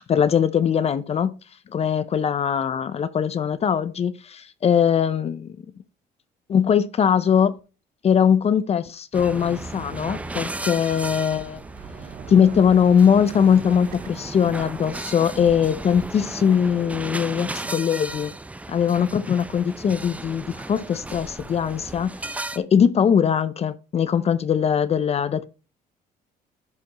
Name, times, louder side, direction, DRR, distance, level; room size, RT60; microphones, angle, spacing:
voice 1, 0.1-1.4 1.7-5.6 6.5-7.6 8.0-11.6 12.3-18.3 18.7-25.4, left 8 dB, 40° left, 0.5 m, -21 dB
sound 1, 9.1-22.6, right 2 dB, 10° right, 0.4 m, -35 dB
sound 2, 9.7-18.1, right 8 dB, 60° right, 0.9 m, -45 dB
10.5 x 5.0 x 3.0 m
cardioid pair, 110°, 17 cm